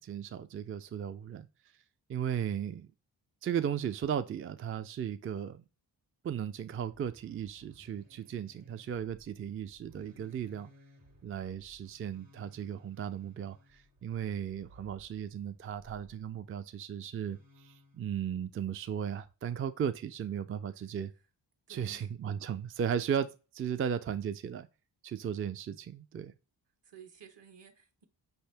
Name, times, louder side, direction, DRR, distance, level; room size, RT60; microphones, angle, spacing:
voice 1, 0.0-1.5 2.1-2.9 3.4-5.6 6.2-10.7 11.2-21.1 21.7-24.7 25.0-26.3, right 8 dB, 30° right, 0.4 m, -36 dB
sound 1, 6.9-16.4 17.1-18.2, left 1 dB, 80° right, 1.4 m, -61 dB
voice 2, 20.7-21.2 21.7-22.1 26.8-28.0, right 7 dB, 65° right, 1.1 m, -55 dB
5.4 x 2.8 x 3.3 m
supercardioid pair, 45°, 45 cm